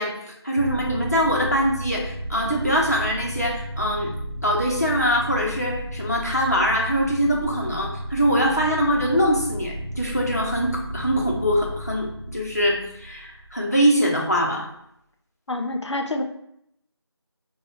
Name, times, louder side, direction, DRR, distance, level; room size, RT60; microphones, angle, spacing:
voice 1, 0.0-4.1 4.4-14.7, equal, 35° left, -2 dB, 0.6 m, -23 dB
sound 1, 0.6-14.0, right 1 dB, 55° right, 0.4 m, -33 dB
voice 2, 15.5-16.2, left 2 dB, 85° left, 4 dB, 0.5 m, -27 dB
4.3 x 2.1 x 2.4 m, 0.75 s
figure-of-eight pair, 175°, 14 cm